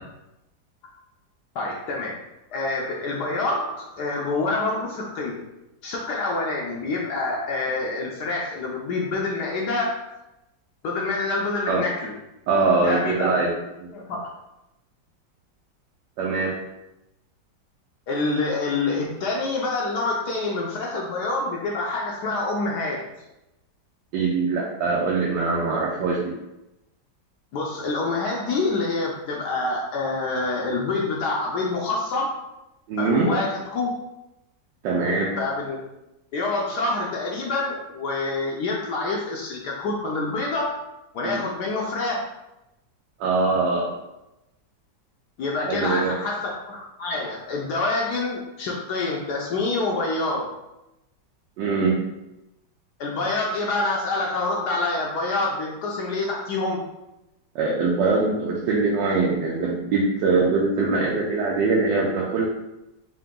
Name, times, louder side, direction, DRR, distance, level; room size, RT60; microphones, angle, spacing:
voice 1, 1.5-2.2 2.5-5.4 5.8-10.1 10.8-12.1 12.8-13.4 13.9-14.2 18.1-23.0 27.5-32.3 33.0-33.9 35.4-35.8 36.3-40.8 41.1-42.2 45.4-50.5 53.0-56.8, left 3 dB, 70° left, -2 dB, 1.1 m, -26 dB
voice 2, 12.5-13.5 13.8-13.9 16.2-16.5 24.1-26.3 32.9-33.3 34.8-35.3 41.2-41.4 43.2-43.9 45.7-46.1 51.6-52.0 57.5-62.5, right 3 dB, 80° right, -3 dB, 1.3 m, -22 dB
3.8 x 2.8 x 3.6 m, 0.93 s
omnidirectional pair, 1.9 m